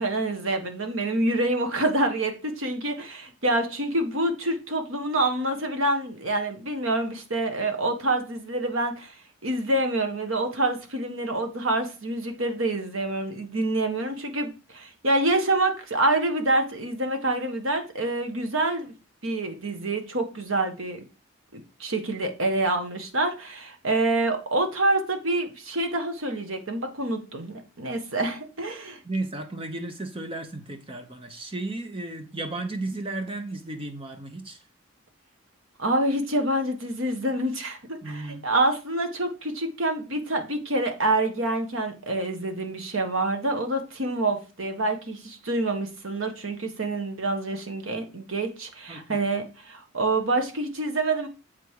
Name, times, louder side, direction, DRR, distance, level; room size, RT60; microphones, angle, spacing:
voice 1, 0.0-9.1 9.4-18.9 19.2-21.1 21.5-29.0 35.8-51.3, right 2 dB, 80° right, 1.6 m, -27 dB
voice 2, 29.0-34.6 38.0-38.4 48.9-49.2, right 2 dB, 25° right, 1.1 m, -34 dB
7.5 x 5.4 x 4.8 m
head